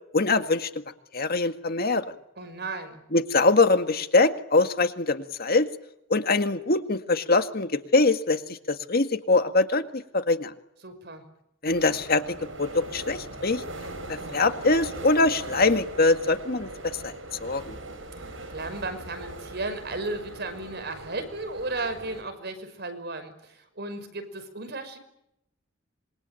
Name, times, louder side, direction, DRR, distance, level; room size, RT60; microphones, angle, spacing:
voice 1, 0.1-0.7 1.1-2.0 3.1-5.7 6.1-8.4 8.7-10.5 11.6-12.2 12.6-13.6 14.1-16.7 17.0-17.1 17.4-17.8, left 3 dB, 50° left, 8 dB, 1.9 m, -23 dB
voice 2, 2.4-3.0 10.8-11.2 18.1-25.0, right 2 dB, 55° right, 8 dB, 5.9 m, -35 dB
sound 1, 11.7-22.2, right 2 dB, 80° right, 7.5 m, -40 dB
26.5 x 24.0 x 9.2 m, 0.78 s
head